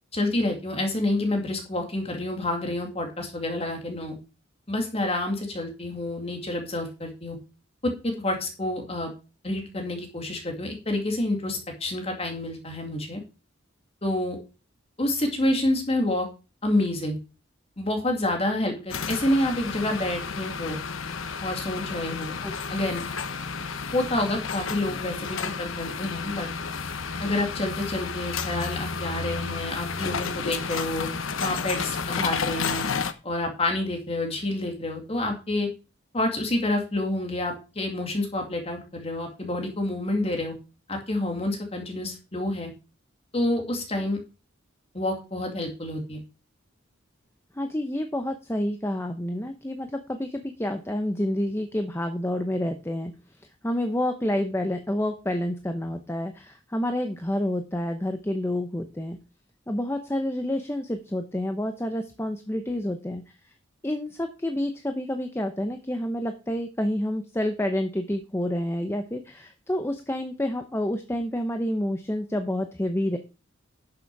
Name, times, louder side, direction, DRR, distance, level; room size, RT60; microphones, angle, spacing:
voice 1, 0.1-4.2 4.7-7.4 7.8-9.1 9.4-13.2 14.0-14.4 15.0-16.3 16.6-17.2 17.8-20.8 21.4-22.3 22.7-23.0 23.9-26.5 27.2-31.1 31.4-32.9 33.2-35.7 36.1-40.6 40.9-42.7 43.3-44.2 44.9-46.2, left 1 dB, 30° left, 3 dB, 2.4 m, -28 dB
sound 1, 18.9-33.1, left 5 dB, 90° left, 1.0 m, -31 dB
voice 2, 47.5-53.1 53.6-59.2 59.7-63.2 63.8-73.2, left 1 dB, 15° left, 6 dB, 0.8 m, -29 dB
11.0 x 6.8 x 4.7 m, 0.31 s
head